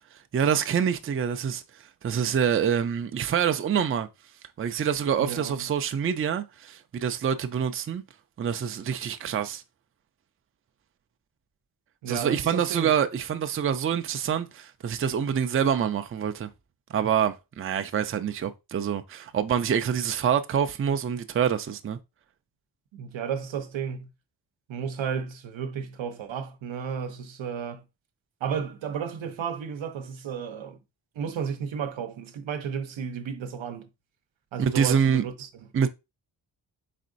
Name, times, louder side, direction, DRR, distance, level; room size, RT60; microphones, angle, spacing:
voice 1, 0.3-1.6 2.0-4.1 4.6-8.0 8.4-9.6 12.1-16.5 16.9-22.0 34.6-35.2 35.7-35.9, right 8 dB, 30° right, 0.4 m, -26 dB
voice 2, 5.2-5.7 12.0-12.9 22.9-24.1 24.7-27.8 28.4-30.8 31.2-33.9 34.5-35.5, right 7 dB, 85° right, 0.8 m, -33 dB
4.2 x 3.7 x 2.5 m
cardioid pair, 85°, 45 cm